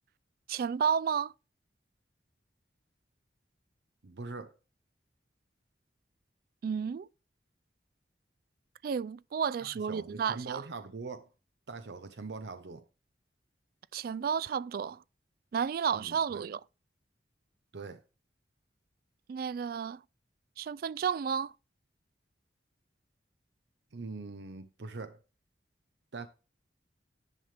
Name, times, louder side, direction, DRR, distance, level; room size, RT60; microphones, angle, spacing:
voice 1, 0.5-1.3 6.6-7.1 8.8-10.6 13.9-15.0 15.5-16.6 19.3-20.0 20.6-21.5, right 7 dB, 55° right, 0.3 m, -32 dB
voice 2, 4.0-4.6 9.6-11.3 11.7-12.8 15.9-16.4 17.7-18.0 23.9-25.2 26.1-26.3, right 4 dB, 75° right, 0.7 m, -42 dB
10.5 x 5.8 x 3.3 m
head